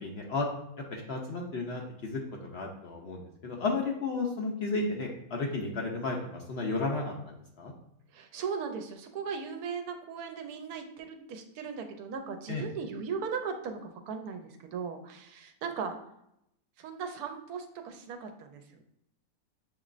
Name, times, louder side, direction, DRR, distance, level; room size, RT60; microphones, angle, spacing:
voice 1, 0.0-0.5 0.9-2.2 2.5-7.7 12.5-12.6, left 3 dB, 60° left, 0 dB, 0.7 m, -33 dB
voice 2, 8.1-16.0 16.8-18.8, right 6 dB, 80° right, 5 dB, 1.1 m, -38 dB
6.7 x 3.0 x 2.5 m, 0.78 s
omnidirectional pair, 1.6 m